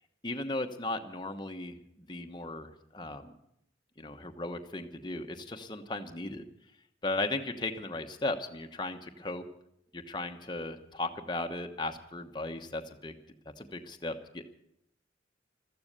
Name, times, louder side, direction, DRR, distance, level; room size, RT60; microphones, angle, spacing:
voice 1, 0.2-3.3 4.0-6.4 7.0-9.4 9.9-13.2 13.6-14.5, left 2 dB, 25° left, 5 dB, 1.1 m, -36 dB
15.0 x 14.0 x 6.8 m, 0.76 s
head